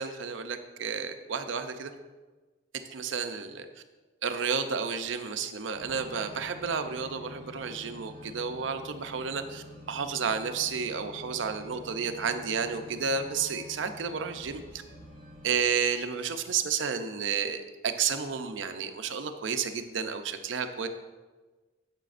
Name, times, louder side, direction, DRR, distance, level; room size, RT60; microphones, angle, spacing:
voice 1, 0.0-1.9 2.9-3.7 4.2-14.8 15.4-20.9, right 6 dB, 75° right, 8 dB, 0.6 m, -31 dB
sound 1, 5.7-15.5, left 1 dB, 40° left, 2.0 m, -48 dB
9.0 x 7.4 x 2.5 m, 1.3 s
head